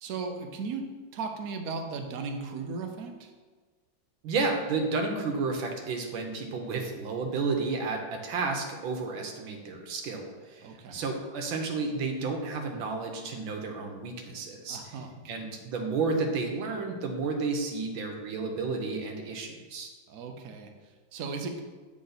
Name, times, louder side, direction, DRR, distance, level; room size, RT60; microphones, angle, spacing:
voice 1, 0.0-3.3 10.6-11.0 14.7-15.1 20.1-21.6, right 4 dB, 70° right, 4 dB, 0.9 m, -37 dB
voice 2, 4.2-15.0 15.3-19.9, right 4 dB, 85° right, 2 dB, 1.5 m, -32 dB
8.2 x 3.7 x 3.9 m, 1.4 s
omnidirectional pair, 2.1 m